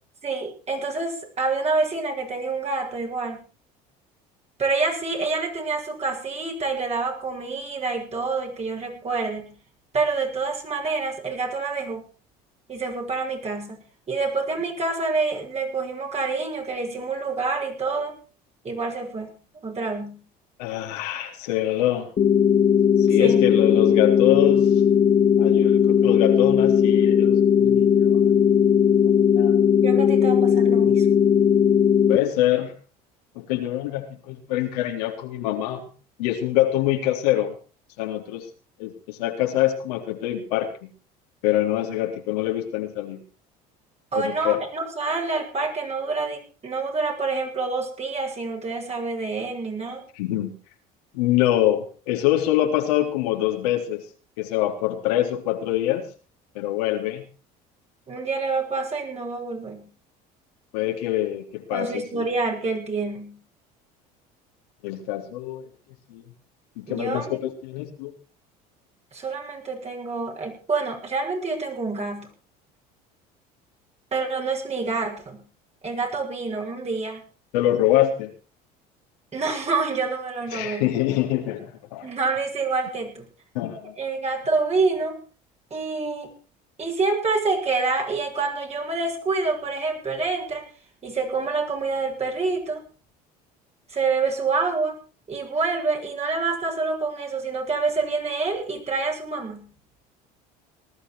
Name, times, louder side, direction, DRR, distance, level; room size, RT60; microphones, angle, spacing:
voice 1, 0.2-3.4 4.6-9.6 9.9-12.1 12.7-18.2 18.6-19.3 19.6-20.2 23.1-23.4 29.8-31.1 44.1-50.0 58.1-59.9 61.7-63.4 66.9-67.4 69.1-72.3 74.1-75.4 75.8-77.3 79.3-80.9 82.0-83.3 84.0-85.2 85.7-86.3 86.8-90.7 91.0-92.9 93.9-95.0 95.3-99.7, right 3 dB, 35° right, 3 dB, 7.1 m, -27 dB
voice 2, 20.6-22.1 23.0-24.7 25.4-28.2 29.0-29.5 32.1-32.7 33.4-35.8 36.2-37.6 38.0-38.5 38.8-40.9 41.4-43.2 44.1-44.6 50.2-50.6 51.1-54.0 54.4-56.1 56.6-57.2 60.7-62.3 64.8-65.7 66.1-66.2 66.8-68.1 77.5-78.3 80.5-82.1 83.5-84.0, left 13 dB, 85° left, 3 dB, 3.8 m, -25 dB
sound 1, 22.2-32.2, left 8 dB, 40° left, 2.4 m, -18 dB
19.5 x 13.0 x 4.8 m, 0.36 s
supercardioid pair, 85°, 19 cm